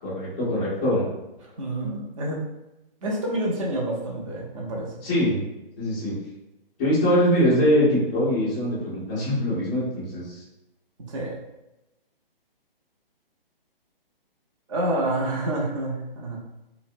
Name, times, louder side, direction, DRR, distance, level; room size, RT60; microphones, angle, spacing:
voice 1, 0.0-1.1 5.0-5.4 5.8-6.1 6.8-10.2, equal, 10° left, -9 dB, 0.4 m, -22 dB
voice 2, 1.4-2.4 3.0-4.9 11.1-11.4 14.7-16.4, right 1 dB, 35° right, -2 dB, 0.6 m, -28 dB
2.5 x 2.0 x 2.6 m, 0.95 s
hypercardioid pair, 145°, 29 cm